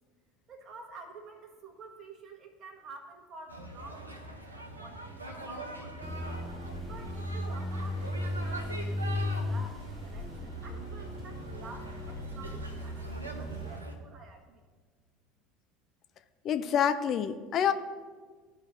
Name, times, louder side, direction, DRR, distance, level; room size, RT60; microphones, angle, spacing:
voice 1, 0.5-6.3 6.8-14.6, right 3 dB, 40° right, 3 dB, 1.4 m, -50 dB
sound 1, 3.5-13.9, right 2 dB, 85° right, 0.8 m, -43 dB
sound 2, 6.0-13.8, left 1 dB, 5° right, 0.7 m, -36 dB
voice 2, 16.4-17.7, left 8 dB, 40° left, 10 dB, 0.4 m, -27 dB
14.0 x 5.0 x 2.6 m, 1.5 s
figure-of-eight pair, 70°, 0 cm